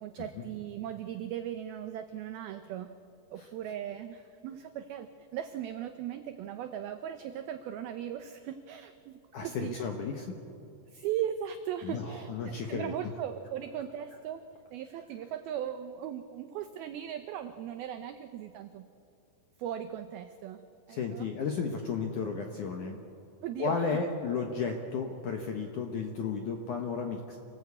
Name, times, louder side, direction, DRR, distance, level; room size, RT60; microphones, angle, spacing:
voice 1, 0.0-2.9 3.3-9.8 10.9-14.4 14.7-18.8 19.6-20.6 20.9-21.3 23.4-24.0, right 10 dB, 90° right, 8 dB, 2.1 m, -38 dB
voice 2, 9.3-10.3 11.8-12.9 20.9-23.0 23.6-27.4, left 5 dB, 70° left, 3 dB, 2.0 m, -33 dB
27.0 x 18.0 x 8.5 m, 2.7 s
omnidirectional pair, 5.4 m